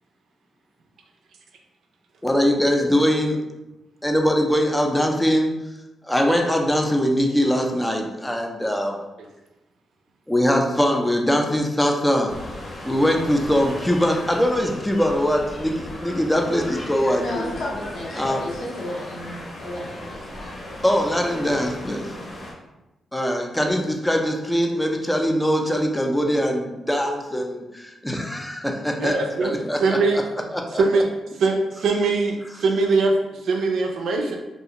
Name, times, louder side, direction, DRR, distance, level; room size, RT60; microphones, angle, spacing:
voice 1, 2.2-3.4 4.0-5.5 6.0-9.0 10.3-12.3 12.8-17.5 18.1-18.4 20.8-22.1 23.1-29.1 29.4-30.2 30.5-31.0, equal, 10° left, 2 dB, 0.5 m, -22 dB
sound 1, 12.3-22.5, left 1 dB, 45° left, 0.9 m, -37 dB
voice 2, 17.2-20.6 21.8-22.3, left 1 dB, 65° left, -4 dB, 0.8 m, -33 dB
voice 3, 29.0-30.2 30.8-31.1 31.4-34.4, right 3 dB, 75° right, 2 dB, 0.4 m, -22 dB
2.5 x 2.3 x 2.8 m, 1.0 s
supercardioid pair, 60°, 0 cm